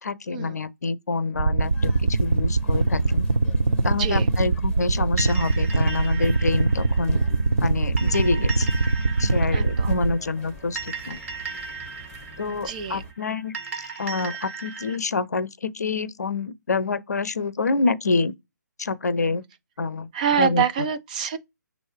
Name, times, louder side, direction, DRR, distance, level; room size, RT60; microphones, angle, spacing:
voice 1, 0.0-3.2 3.8-7.2 7.6-8.7 9.2-11.2 12.4-13.5 14.0-18.3 18.8-19.4 19.8-20.1 20.4-20.9, left 4 dB, 60° left, 0.6 m, -27 dB
sound 1, 1.4-10.1, right 3 dB, 75° right, 0.5 m, -22 dB
sound 2, 1.6-13.1, equal, 10° left, 1.1 m, -45 dB
sound 3, 5.2-15.0, right 5 dB, 40° right, 1.9 m, -37 dB
voice 2, 9.5-9.9 12.6-13.0 20.1-21.4, right 8 dB, 25° right, 0.4 m, -26 dB
6.3 x 2.5 x 3.1 m
figure-of-eight pair, 140°, 10 cm